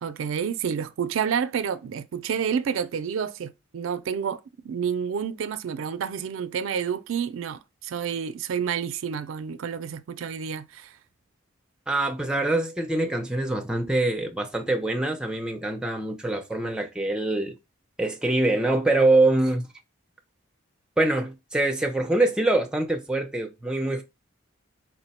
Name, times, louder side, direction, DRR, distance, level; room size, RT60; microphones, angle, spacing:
voice 1, 0.0-11.0, right 7 dB, 80° right, 0.4 m, -29 dB
voice 2, 11.9-17.6 18.0-19.7 21.0-24.0, right 2 dB, 5° right, 0.4 m, -24 dB
4.5 x 2.1 x 4.0 m
head